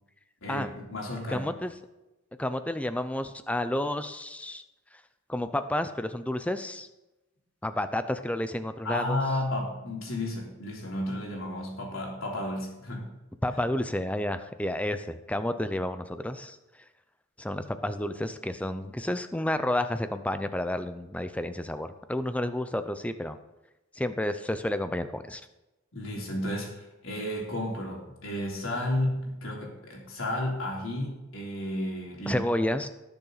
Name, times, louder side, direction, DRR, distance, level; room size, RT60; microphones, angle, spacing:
voice 1, 0.4-1.5 8.8-13.1 25.9-32.4, left 1 dB, 80° left, -2 dB, 3.5 m, -32 dB
voice 2, 1.3-1.7 2.4-4.6 5.3-6.9 7.6-9.2 13.4-16.6 17.4-23.4 23.9-25.4 32.3-32.9, left 1 dB, 5° left, 10 dB, 0.5 m, -30 dB
18.5 x 6.9 x 4.1 m, 1.0 s
head